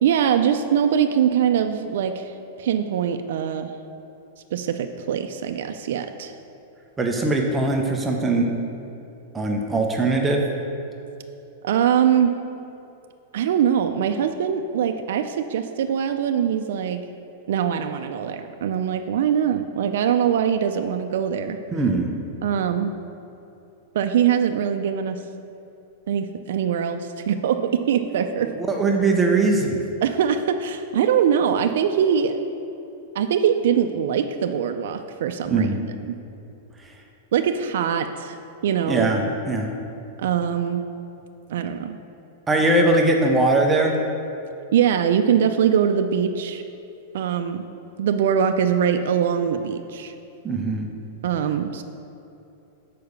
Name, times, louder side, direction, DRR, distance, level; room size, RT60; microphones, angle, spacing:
voice 1, 0.0-3.7 4.5-6.3 11.6-12.3 13.3-17.0 17.5-21.6 22.4-22.9 23.9-25.2 26.1-28.5 30.0-32.4 33.1-35.7 36.1-36.2 37.3-38.4 38.6-39.1 40.2-40.8 41.5-42.0 44.7-46.6 47.1-47.6 48.0-50.1 51.2-51.8, right 8 dB, 65° right, 6 dB, 0.4 m, -22 dB
voice 2, 7.0-8.5 9.3-10.4 21.7-22.1 28.6-29.8 35.5-35.8 38.9-39.7 42.5-43.9 50.4-50.9, right 2 dB, 10° right, 1 dB, 0.6 m, -21 dB
6.8 x 4.7 x 6.5 m, 2.9 s
supercardioid pair, 165°, 0 cm